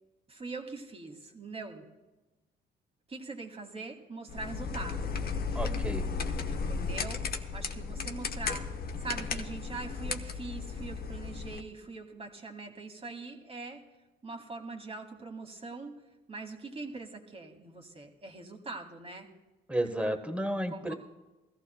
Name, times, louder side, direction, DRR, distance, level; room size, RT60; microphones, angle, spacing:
voice 1, 0.3-1.9 3.1-5.1 6.7-7.2 7.5-8.6 9.0-13.8 14.2-16.0 16.3-19.3 20.7-20.9, right 3 dB, 30° right, 3 dB, 2.0 m, -42 dB
sound 1, 4.3-11.6, left 5 dB, 50° left, 1.0 m, -35 dB
voice 2, 5.5-6.0 19.7-20.9, right 1 dB, 5° right, 6 dB, 1.3 m, -32 dB
21.0 x 14.5 x 2.2 m, 1.1 s
cardioid pair, 90°, 20 cm